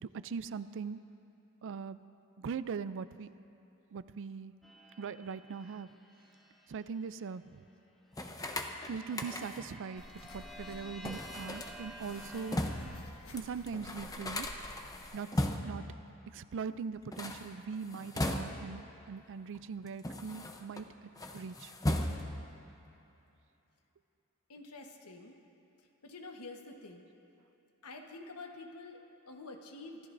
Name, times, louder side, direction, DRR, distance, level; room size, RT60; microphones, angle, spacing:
voice 1, 0.0-1.0 1.6-2.0 2.4-3.3 3.9-4.5 5.0-5.9 6.7-7.4 8.9-10.1 10.3-12.6 13.3-14.5 15.1-15.3 15.6-15.8 16.3-21.7, right 5 dB, 55° right, 14 dB, 0.4 m, -41 dB
sound 1, 4.6-7.4 8.2-13.0, right 1 dB, ahead, 1.2 m, -52 dB
sound 2, 8.1-9.8 11.0-13.0 13.4-13.5 13.7-15.9 17.0-18.8 19.5-20.8 21.1-22.5, left 1 dB, 15° left, 0.7 m, -37 dB
sound 3, 10.0-15.1, left 1 dB, 65° left, 1.4 m, -53 dB
voice 2, 24.5-25.4 26.0-27.1 27.8-30.0, left 3 dB, 85° left, 3 dB, 1.3 m, -48 dB
26.0 x 14.0 x 2.6 m, 2.8 s
head